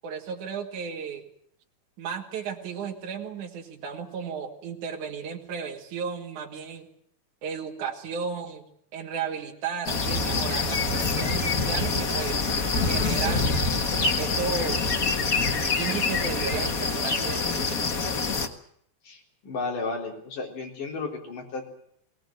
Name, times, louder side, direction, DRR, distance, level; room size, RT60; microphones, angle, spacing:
voice 1, 0.0-1.2 2.0-6.9 7.4-12.4 12.9-13.7 14.2-14.9 15.8-17.9, right 6 dB, 55° right, 0 dB, 3.5 m, -34 dB
sound 1, 9.8-18.5, left 4 dB, 80° left, 0.7 m, -26 dB
voice 2, 19.0-21.7, left 3 dB, 60° left, 1 dB, 5.4 m, -33 dB
21.0 x 18.5 x 9.2 m, 0.67 s
omnidirectional pair, 4.3 m